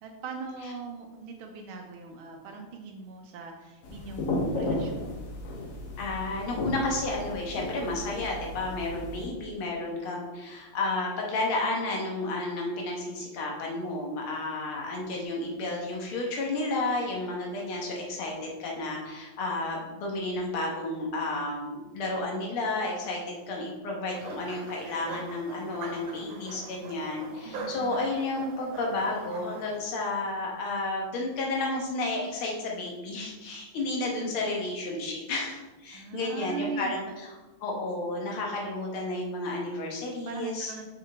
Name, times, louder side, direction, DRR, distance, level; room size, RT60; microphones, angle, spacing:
voice 1, 0.0-5.1 27.4-28.1 35.9-37.1 40.2-40.9, right 4 dB, 90° right, 2 dB, 1.5 m, -40 dB
sound 1, 3.8-9.3, left 1 dB, 50° left, 1.1 m, -34 dB
voice 2, 6.0-37.3 37.6-40.7, left 2 dB, 85° left, -1 dB, 2.0 m, -32 dB
sound 2, 24.1-29.8, right 3 dB, 70° right, 1.7 m, -42 dB
5.8 x 5.4 x 3.4 m, 1.2 s
omnidirectional pair, 2.3 m